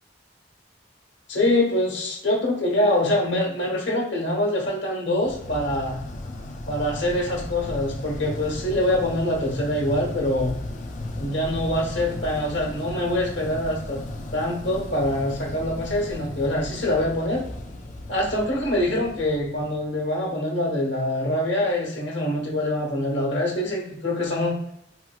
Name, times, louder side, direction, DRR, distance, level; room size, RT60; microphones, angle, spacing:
voice 1, 1.3-6.0 6.7-10.6 11.2-14.0 14.3-17.4 18.1-24.5, left 1 dB, 90° left, -1 dB, 1.2 m, -24 dB
sound 1, 5.2-20.2, left 1 dB, 40° left, 0.4 m, -36 dB
3.0 x 3.0 x 2.4 m, 0.74 s
head